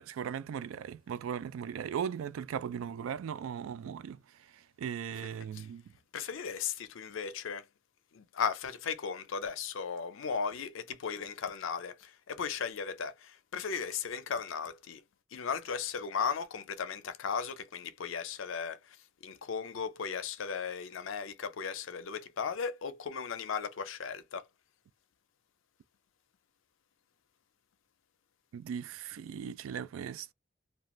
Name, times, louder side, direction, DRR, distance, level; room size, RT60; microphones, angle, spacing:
voice 1, 0.0-5.9 28.5-30.3, right 8 dB, 90° right, 0.3 m, -38 dB
voice 2, 6.1-7.7 8.1-15.0 15.3-19.0 19.2-24.5, left 6 dB, 75° left, 0.5 m, -36 dB
2.4 x 2.2 x 2.9 m
head